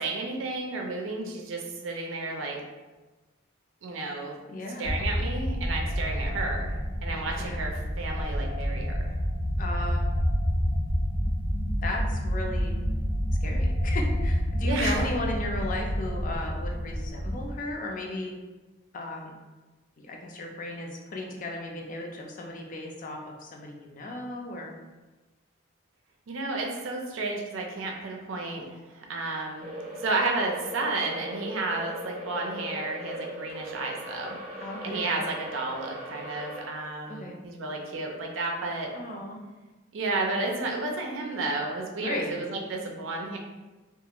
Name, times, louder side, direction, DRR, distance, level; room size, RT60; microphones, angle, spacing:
voice 1, 0.0-2.6 3.8-4.4 4.8-6.7 7.0-9.1 14.6-15.0 26.3-29.7 30.0-34.4 34.8-38.9 39.9-43.4, right 3 dB, 85° right, 1 dB, 0.5 m, -32 dB
voice 2, 4.5-4.9 7.4-7.6 9.6-10.2 11.8-12.8 13.4-18.3 18.9-19.4 20.0-24.8 34.6-35.2 37.1-37.4 38.9-39.4 42.0-42.4, left 1 dB, 40° left, 1 dB, 0.4 m, -35 dB
sound 1, 4.8-17.5, equal, 75° left, 0.8 m, -28 dB
sound 2, 29.6-36.7, equal, 30° right, 0.6 m, -39 dB
2.4 x 2.4 x 2.8 m, 1.2 s
head